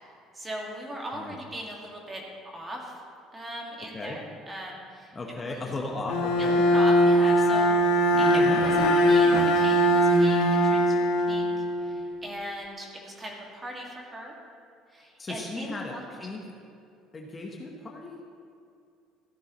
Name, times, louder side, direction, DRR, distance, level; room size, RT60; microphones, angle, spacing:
voice 1, 0.3-3.0 3.3-5.7 6.4-11.5 11.8-14.3 14.9-16.0, right 1 dB, 20° right, -1 dB, 2.1 m, -39 dB
voice 2, 5.1-6.6 8.4-8.6 15.2-15.9 16.2-16.4 17.1-18.2, left 2 dB, 25° left, 0 dB, 1.1 m, -36 dB
Bowed string instrument, 6.1-12.1, equal, 85° left, 1.4 m, -21 dB
15.0 x 10.0 x 3.1 m, 2.4 s
cardioid pair, 125°, 0 cm